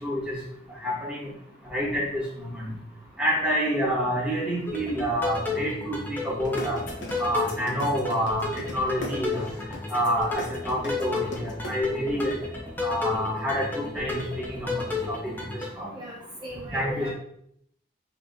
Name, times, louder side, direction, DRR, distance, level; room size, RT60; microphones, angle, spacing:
voice 1, 0.0-0.4 0.8-1.3 1.7-2.2 2.5-2.7 3.2-6.0 6.2-6.8 7.2-8.5 8.7-9.5 9.9-12.3 12.8-15.3 15.7-15.9 16.7-17.1, equal, 5° right, -6 dB, 1.6 m, -27 dB
sound 1, 4.7-15.7, left 3 dB, 10° left, 0.9 m, -33 dB
sound 2, 6.4-11.7, left 1 dB, 85° left, 1.0 m, -37 dB
voice 2, 15.9-17.1, equal, 25° right, -7 dB, 0.9 m, -37 dB
5.9 x 3.1 x 2.8 m, 0.72 s
head